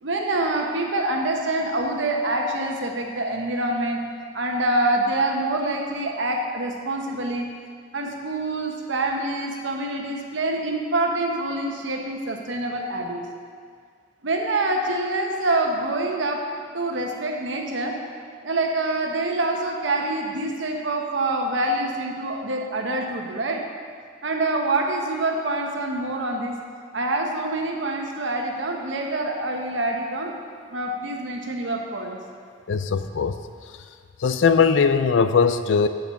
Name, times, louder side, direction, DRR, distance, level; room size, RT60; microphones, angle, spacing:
voice 1, 0.0-4.0 4.3-7.4 7.9-13.2 14.2-18.0 18.4-23.6 24.2-26.6 26.9-30.3 30.7-32.2, right 2 dB, 75° right, 2 dB, 1.1 m, -26 dB
voice 2, 32.7-33.4 34.2-35.9, left 5 dB, 75° left, 11 dB, 0.4 m, -19 dB
8.6 x 6.5 x 5.7 m, 2.1 s
head